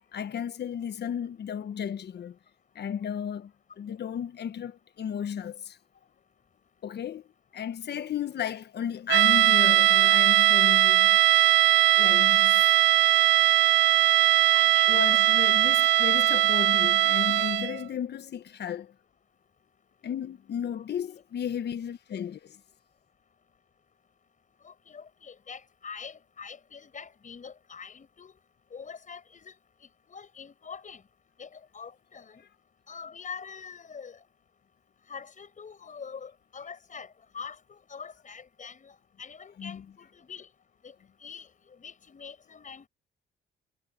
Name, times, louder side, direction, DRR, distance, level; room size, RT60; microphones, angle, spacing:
voice 1, 0.0-2.4 2.7-5.8 6.8-7.2 7.5-11.2 11.7-12.6 14.9-18.9 20.0-22.6 39.6-39.8, left 9 dB, 60° left, 1.4 m, -34 dB
sound 1, 9.1-17.8, right 14 dB, 65° right, 0.4 m, -20 dB
voice 2, 14.5-15.5 15.8-15.9 20.7-20.8 24.6-28.3 28.7-29.5 30.1-31.0 31.4-32.4 32.9-34.2 35.1-38.9 39.2-40.5 40.8-40.9 41.2-41.5 41.8-42.9, left 6 dB, 40° left, 5.8 m, -44 dB
cardioid pair, 90°, 20 cm